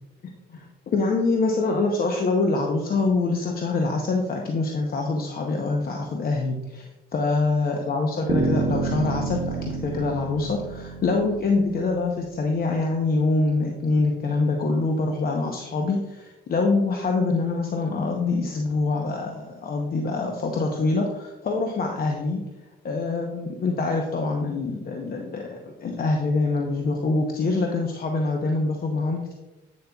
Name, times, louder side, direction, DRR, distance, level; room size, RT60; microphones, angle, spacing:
voice 1, 0.5-6.8 7.1-22.4 22.8-29.3, left 3 dB, 50° left, 2 dB, 0.8 m, -25 dB
sound 1, 8.3-12.3, right 3 dB, 55° right, 0.8 m, -29 dB
8.5 x 6.6 x 2.3 m, 1.1 s
cardioid pair, 90°, 20 cm